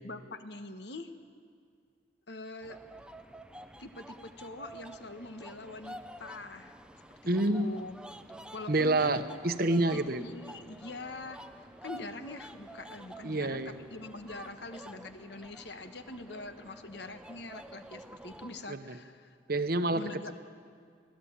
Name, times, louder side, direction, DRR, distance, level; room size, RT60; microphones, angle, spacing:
voice 1, 0.0-1.1 2.3-2.8 3.8-6.7 7.2-8.0 8.5-9.2 9.9-19.4 19.9-20.3, left 2 dB, 60° left, 9 dB, 1.3 m, -44 dB
sound 1, 2.6-18.7, right 1 dB, 5° right, 0.6 m, -50 dB
voice 2, 7.3-7.7 8.7-10.2 13.2-13.8 18.7-18.8 19.5-20.3, right 2 dB, 50° right, 10 dB, 1.0 m, -28 dB
24.0 x 16.5 x 8.8 m, 2.1 s
head